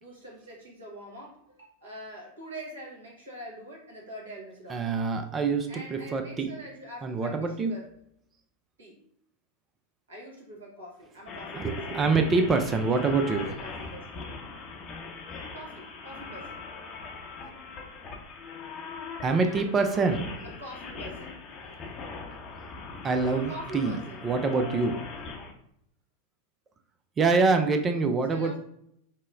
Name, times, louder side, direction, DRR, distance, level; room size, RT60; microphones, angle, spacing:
voice 1, 0.0-4.9 5.7-7.8 8.8-9.0 10.1-12.0 13.0-14.1 15.5-16.6 19.3-19.7 20.6-21.3 23.2-24.2 28.3-28.6, right 1 dB, 70° right, -3 dB, 1.3 m, -44 dB
voice 2, 4.7-6.5 7.0-7.7 11.6-13.5 19.2-20.3 23.0-25.1 27.2-28.6, right 4 dB, 20° right, 7 dB, 0.3 m, -25 dB
sound 1, 11.3-25.5, left 4 dB, 30° left, 0.7 m, -41 dB
5.4 x 2.0 x 2.5 m, 0.74 s
figure-of-eight pair, 90°, 0 cm